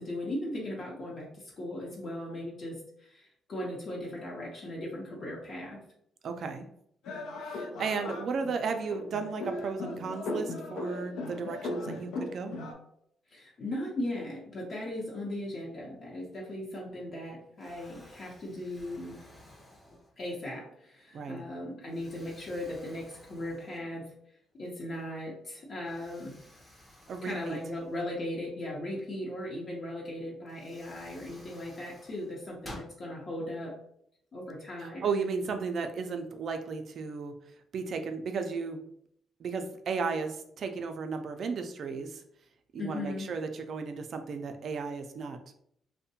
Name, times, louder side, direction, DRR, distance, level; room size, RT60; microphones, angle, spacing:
voice 1, 0.0-5.8 13.3-19.2 20.2-24.1 24.5-26.4 27.2-33.7 34.3-35.1 42.8-43.3, left 1 dB, 50° left, -4 dB, 0.7 m, -38 dB
voice 2, 6.2-6.7 7.4-12.5 21.1-21.4 27.1-27.6 34.8-37.3 37.7-38.8 39.4-42.2 42.7-45.4, right 5 dB, 60° right, 7 dB, 0.4 m, -34 dB
sound 1, 7.0-12.7, left 2 dB, 80° left, 0.5 m, -37 dB
Explosion, 16.9-17.3 17.6-20.4 21.0-21.2 21.9-24.2 24.5-24.6 25.8-28.5 29.9-30.0 30.5-33.0, left 1 dB, 15° left, 0.6 m, -53 dB
2.6 x 2.1 x 2.7 m, 0.70 s
cardioid pair, 90°, 0 cm